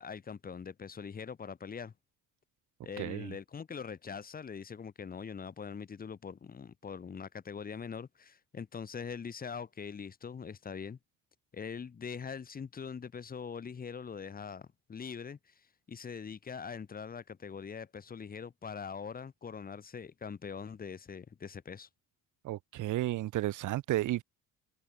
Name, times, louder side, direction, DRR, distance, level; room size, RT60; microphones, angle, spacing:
voice 1, 0.0-1.9 2.8-11.0 11.5-15.5 15.9-21.9, left 6 dB, 25° left, 6.5 m, -42 dB
voice 2, 3.0-3.3 22.4-24.2, right 15 dB, 60° right, 5.2 m, -32 dB
cardioid pair, 165°, 34 cm